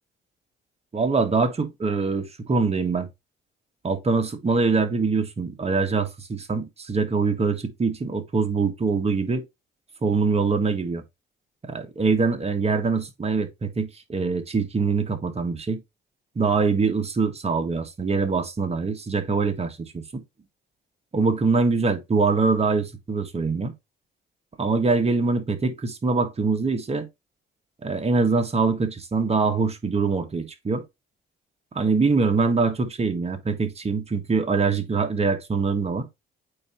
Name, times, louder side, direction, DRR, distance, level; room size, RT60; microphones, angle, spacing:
voice 1, 0.9-3.1 3.8-9.4 10.0-11.0 11.7-15.8 16.3-20.2 21.1-23.7 24.6-27.1 27.8-30.8 31.7-36.1, right 4 dB, 30° right, 1.4 m, -24 dB
8.5 x 2.8 x 4.2 m
cardioid pair, 90°, 20 cm